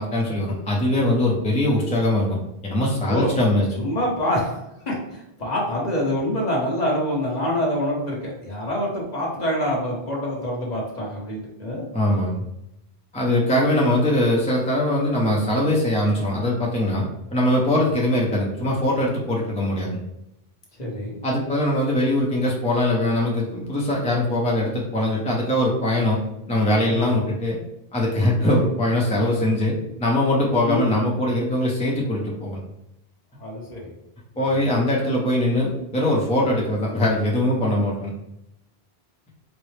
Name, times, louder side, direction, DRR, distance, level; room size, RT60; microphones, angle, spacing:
voice 1, 0.0-2.4 2.6-3.7 11.9-12.4 13.1-17.0 17.3-20.0 21.2-26.2 26.5-27.6 27.9-32.6 34.4-38.1, left 1 dB, 10° left, -4 dB, 0.5 m, -22 dB
voice 2, 3.8-4.6 4.9-11.9 20.8-21.2 26.9-27.1 28.3-28.6 30.6-31.0 33.4-33.9, equal, 45° left, -3 dB, 1.0 m, -26 dB
4.3 x 2.0 x 3.2 m, 0.84 s
omnidirectional pair, 1.0 m